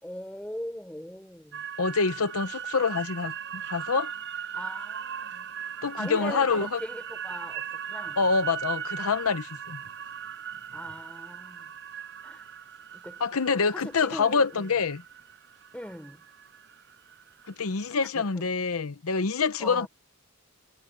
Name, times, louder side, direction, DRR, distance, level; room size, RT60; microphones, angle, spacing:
voice 1, 0.0-1.6 4.5-5.5 6.0-8.2 10.7-11.7 12.2-12.4 12.9-13.2 13.7-14.7 15.7-16.2 18.1-18.4 19.6-19.9, equal, 5° left, 4.4 m, -40 dB
sound 1, 1.5-17.9, right 8 dB, 55° right, 5.9 m, -39 dB
voice 2, 1.8-4.1 5.8-6.8 8.2-9.8 13.2-15.0 17.5-19.9, left 5 dB, 70° left, 0.8 m, -26 dB
head